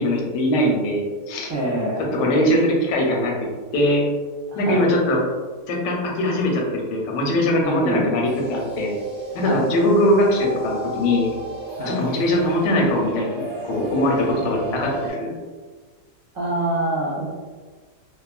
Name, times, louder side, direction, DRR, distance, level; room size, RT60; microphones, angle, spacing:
voice 1, 0.0-1.5 2.1-3.3 3.7-4.0 4.6-5.2 5.7-9.0 9.3-11.3 11.8-15.3, left 1 dB, 85° left, -1 dB, 1.3 m, -21 dB
voice 2, 1.5-2.0 4.5-4.9 7.6-8.2 9.4-9.6 11.7-12.0 16.3-17.3, right 1 dB, 60° right, -6 dB, 1.0 m, -25 dB
sound 1, 8.2-15.1, right 2 dB, 25° right, 1.1 m, -33 dB
2.9 x 2.5 x 2.3 m, 1.4 s
omnidirectional pair, 1.9 m